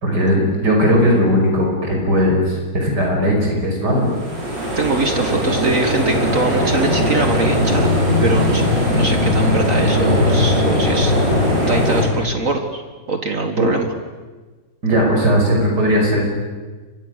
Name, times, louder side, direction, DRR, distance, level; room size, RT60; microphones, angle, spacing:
voice 1, 0.0-4.1 13.5-13.7 14.8-16.3, equal, 65° right, 0 dB, 6.2 m, -17 dB
sound 1, 4.0-12.0, left 1 dB, 80° right, 7.5 m, -18 dB
voice 2, 4.8-7.9 8.2-8.7 8.9-11.1 11.7-12.8 13.1-13.9, right 3 dB, 50° right, 5 dB, 2.0 m, -22 dB
30.0 x 24.5 x 6.6 m, 1.3 s
omnidirectional pair, 1.9 m